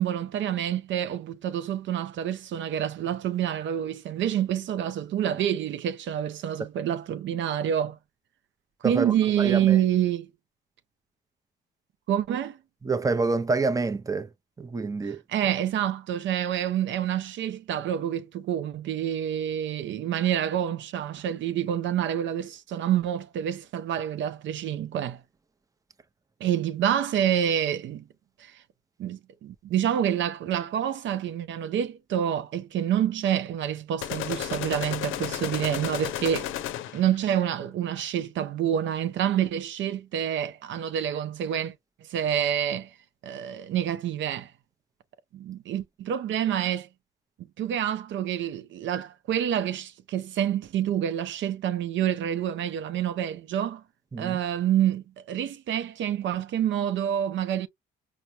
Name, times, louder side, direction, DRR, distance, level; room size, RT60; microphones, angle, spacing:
voice 1, 0.0-8.0 8.8-10.3 12.1-12.6 15.1-25.2 26.4-28.0 28.4-28.6 29.0-36.5 36.9-41.7 42.1-42.9 43.2-44.5 45.3-46.9 47.6-53.8 54.2-57.7, right 10 dB, 70° right, 0.5 m, -27 dB
voice 2, 8.8-9.8 12.8-14.3 14.6-15.2 54.1-54.4, right 3 dB, 15° right, 0.6 m, -27 dB
sound 1, 34.0-37.2, left 12 dB, 85° left, 0.5 m, -33 dB
4.6 x 2.1 x 2.6 m
cardioid pair, 90°, 20 cm